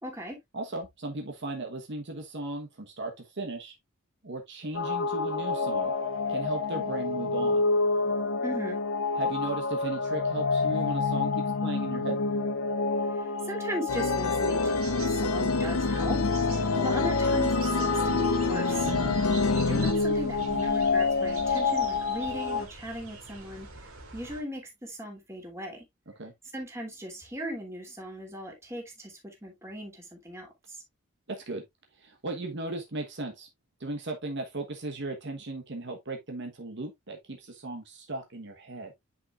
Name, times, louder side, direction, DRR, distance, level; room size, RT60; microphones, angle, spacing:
voice 1, 0.0-0.4 8.4-8.8 13.0-18.9 19.7-25.8 26.5-30.8, equal, 15° right, 3.0 m, -38 dB
voice 2, 0.5-3.7 4.2-5.9 6.3-7.6 9.2-12.2 18.8-19.2 26.2-26.3 31.3-31.6 31.9-33.5 33.8-38.9, right 2 dB, 55° right, 1.2 m, -36 dB
sound 1, 4.7-22.6, left 4 dB, 65° left, 1.0 m, -28 dB
sound 2, 13.9-19.9, left 3 dB, 90° left, 0.9 m, -28 dB
sound 3, 14.6-24.4, right 3 dB, 90° right, 3.2 m, -45 dB
9.4 x 5.3 x 2.5 m
head